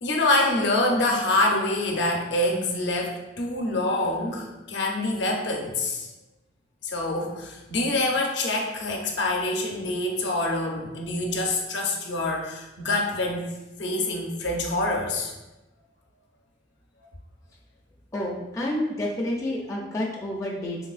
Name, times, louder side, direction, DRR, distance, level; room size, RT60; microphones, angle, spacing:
voice 1, 0.0-6.1 6.8-13.5 13.8-15.3, left 2 dB, 65° left, 1 dB, 0.6 m, -26 dB
voice 2, 18.1-20.9, left 1 dB, 15° left, -4 dB, 0.4 m, -29 dB
3.3 x 3.1 x 2.4 m, 1.0 s
head